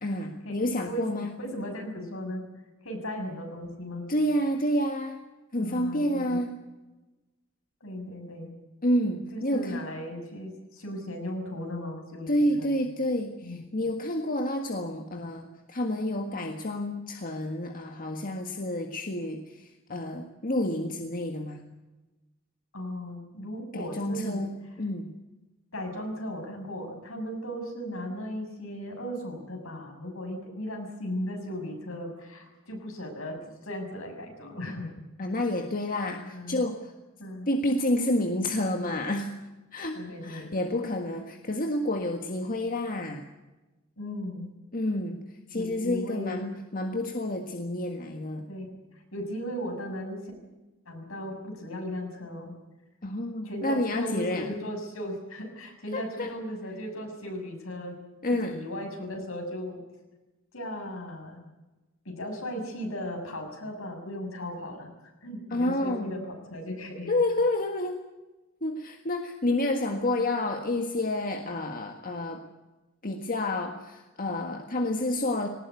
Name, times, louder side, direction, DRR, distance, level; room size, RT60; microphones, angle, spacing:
voice 1, 0.0-1.3 4.1-5.2 5.5-6.5 8.8-9.8 12.3-21.6 23.7-25.1 35.2-36.9 37.5-39.3 39.7-43.2 44.7-45.2 45.5-48.5 53.0-54.5 55.9-56.3 58.2-58.5 65.5-66.2 67.1-68.0 68.6-72.4 73.0-75.5, left 1 dB, 45° left, 4 dB, 1.6 m, -29 dB
voice 2, 1.4-2.4 2.8-4.1 5.6-6.4 7.8-8.5 9.3-12.7 13.4-13.6 22.7-24.4 25.7-33.4 33.6-34.9 36.3-36.6 37.2-37.5 39.9-40.5 44.0-44.5 45.5-46.4 48.5-48.7 48.9-50.3 50.9-52.5 53.4-58.0 58.3-59.8 60.5-61.4 62.1-64.9 65.2-67.2, equal, 75° left, 3 dB, 6.9 m, -36 dB
20.0 x 19.0 x 9.6 m, 1.1 s
head